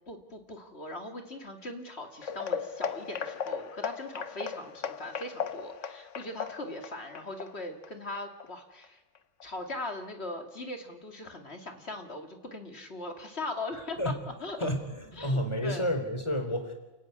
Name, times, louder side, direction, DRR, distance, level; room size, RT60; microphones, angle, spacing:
voice 1, 0.1-9.0 9.4-14.1 14.4-14.7 15.1-15.9, left 2 dB, 30° left, 5 dB, 2.6 m, -40 dB
sound 1, 2.2-8.9 9.1-9.4 9.8-9.9 10.4-10.5, left 7 dB, 45° left, 1.0 m, -37 dB
voice 2, 13.7-14.1 14.6-16.7, equal, 15° left, 6 dB, 3.4 m, -30 dB
29.5 x 14.0 x 9.6 m, 1.1 s
omnidirectional pair, 2.2 m